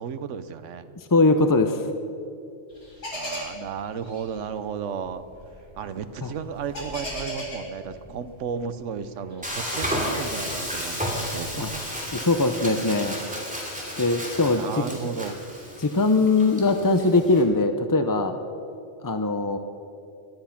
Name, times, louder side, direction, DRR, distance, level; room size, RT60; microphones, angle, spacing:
voice 1, 0.0-1.0 3.1-5.2 5.8-11.9 14.5-15.4, right 7 dB, 80° right, 12 dB, 1.1 m, -34 dB
voice 2, 1.0-1.8 6.2-6.3 11.6-11.7 12.1-13.2 14.0-14.6 15.8-18.4 19.0-19.6, left 3 dB, 25° left, 8 dB, 0.4 m, -21 dB
sound 1, 2.7-8.7 9.2-11.9, equal, 65° left, 4.4 m, -38 dB
Frying (food), 9.4-17.4, equal, 5° right, 2.8 m, -32 dB
19.5 x 12.0 x 5.9 m, 2.6 s
omnidirectional pair, 1.3 m